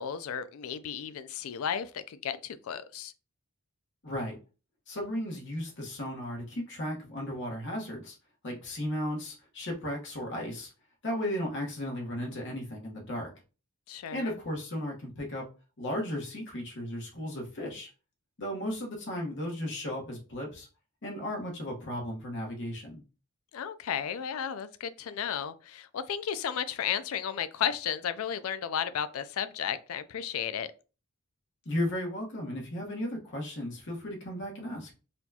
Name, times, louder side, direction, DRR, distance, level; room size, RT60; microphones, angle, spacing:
voice 1, 0.0-3.1 13.9-14.3 23.5-30.7, left 8 dB, 70° left, 0.4 m, -34 dB
voice 2, 4.0-4.4 4.9-8.1 8.4-10.7 11.0-13.3 14.1-15.5 15.8-17.9 18.4-20.7 21.0-23.0 31.6-34.9, left 1 dB, 55° left, 1.2 m, -35 dB
4.2 x 2.3 x 2.8 m
head